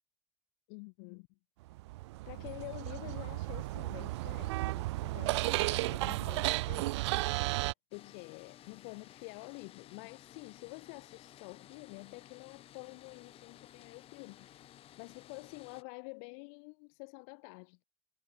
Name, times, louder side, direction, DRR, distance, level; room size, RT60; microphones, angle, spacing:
voice 1, 0.7-1.3 2.3-17.8, left 40 dB or more, 70° left, 2.0 m, -49 dB
sound 1, 1.7-7.7, right 19 dB, 90° right, 0.9 m, -34 dB
sound 2, 7.9-15.8, left 12 dB, 45° left, 1.7 m, -56 dB
supercardioid pair, 120°, 14 cm